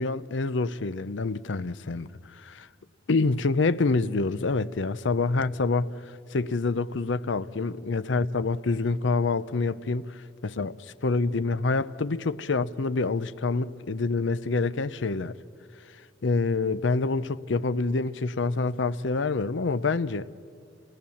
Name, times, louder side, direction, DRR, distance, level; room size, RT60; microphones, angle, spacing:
voice 1, 0.0-2.1 2.4-2.7 3.1-5.9 6.3-15.3 16.2-20.3, left 3 dB, 75° left, 0.6 m, -27 dB
28.5 x 18.5 x 7.1 m
head